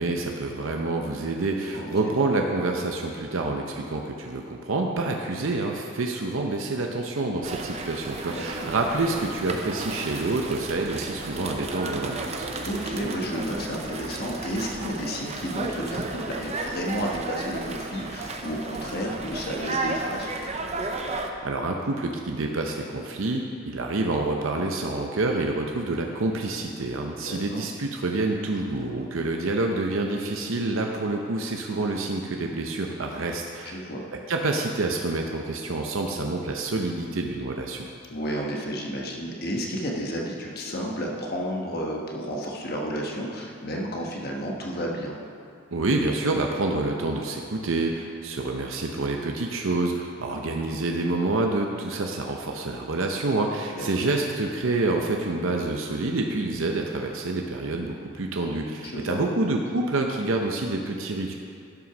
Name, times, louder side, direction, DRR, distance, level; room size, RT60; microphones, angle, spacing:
voice 1, 0.0-12.5 21.4-33.8 34.3-37.9 45.7-61.3, right 2 dB, 70° right, 2 dB, 0.7 m, -27 dB
voice 2, 1.7-2.1 8.3-8.7 12.6-20.3 27.3-27.6 33.6-34.1 38.1-45.2 53.8-54.1 58.8-59.2, equal, 45° left, -1 dB, 1.2 m, -32 dB
sound 1, 7.4-21.3, right 2 dB, 30° right, 0.6 m, -33 dB
11.5 x 6.1 x 6.0 m, 2.4 s
head